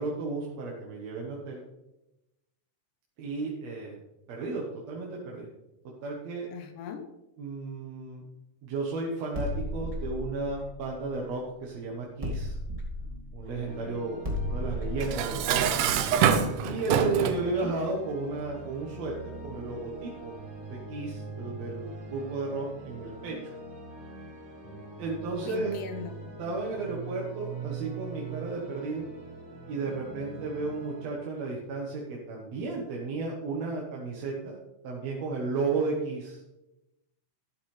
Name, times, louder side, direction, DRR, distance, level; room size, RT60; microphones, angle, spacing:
voice 1, 0.0-1.6 3.2-4.0 4.3-5.5 6.0-6.5 7.4-8.2 8.6-12.6 13.3-15.6 16.6-20.3 20.7-23.5 25.0-25.8 26.4-29.1 29.7-34.6 34.8-36.4, right 3 dB, 65° right, -2 dB, 2.4 m, -33 dB
voice 2, 6.5-7.0 17.2-17.8 25.4-26.2, left 6 dB, 85° left, 6 dB, 2.5 m, -39 dB
sound 1, 9.3-11.7 12.2-16.9, left 1 dB, 15° right, 1.5 m, -35 dB
sound 2, 13.7-31.1, right 3 dB, 40° right, 2.3 m, -43 dB
Dishes pots and pans, 15.0-17.5, right 8 dB, 80° right, 2.3 m, -25 dB
12.0 x 10.5 x 3.3 m, 0.95 s
omnidirectional pair, 3.6 m